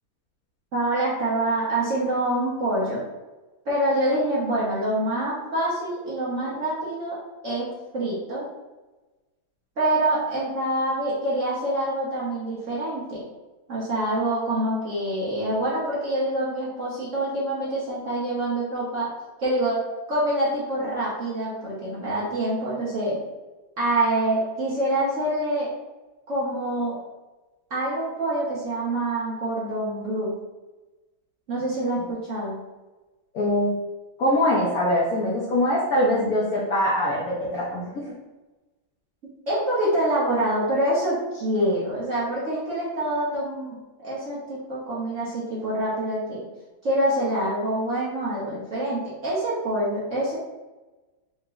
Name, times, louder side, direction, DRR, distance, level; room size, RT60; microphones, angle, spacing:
voice 1, 0.7-3.0 3.6-7.2 7.4-8.5 9.8-13.2 13.7-19.1 19.4-19.8 20.1-23.2 23.8-25.7 26.3-27.0 27.7-30.3 31.5-32.6 39.5-46.4 46.8-50.3, right 1 dB, 50° right, -7 dB, 1.1 m, -26 dB
voice 2, 33.3-33.7 34.2-37.8, left 1 dB, 65° left, -5 dB, 1.0 m, -22 dB
3.9 x 2.2 x 3.6 m, 1.1 s
omnidirectional pair, 2.2 m